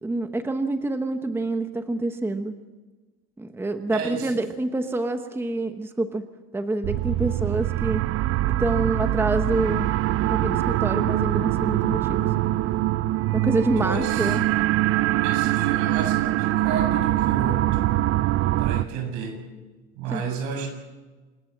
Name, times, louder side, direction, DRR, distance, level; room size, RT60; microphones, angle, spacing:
voice 1, 0.0-2.6 3.4-6.2 6.5-8.0 8.6-9.9 10.2-12.3 13.3-14.5 20.1-20.2, right 2 dB, 10° right, 8 dB, 1.1 m, -27 dB
voice 2, 3.9-4.4 13.8-14.4 15.2-17.9 18.6-19.4 20.0-20.7, right 5 dB, 75° right, 5 dB, 7.5 m, -32 dB
sound 1, 6.8-18.8, right 15 dB, 50° right, 0.7 m, -23 dB
27.5 x 16.5 x 7.4 m, 1.3 s
cardioid pair, 140°, 29 cm